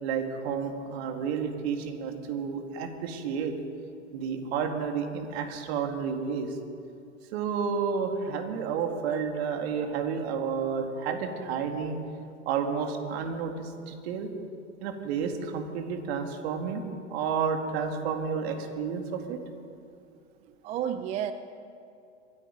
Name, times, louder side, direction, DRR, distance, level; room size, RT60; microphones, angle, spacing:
voice 1, 0.0-3.5 4.1-6.6 7.3-12.0 12.5-14.3 14.8-16.8 17.1-19.4, right 6 dB, 55° right, 5 dB, 2.2 m, -31 dB
voice 2, 20.4-21.3, right 10 dB, 20° right, 11 dB, 0.4 m, -32 dB
25.0 x 9.0 x 5.1 m, 2.5 s
hypercardioid pair, 115°, 37 cm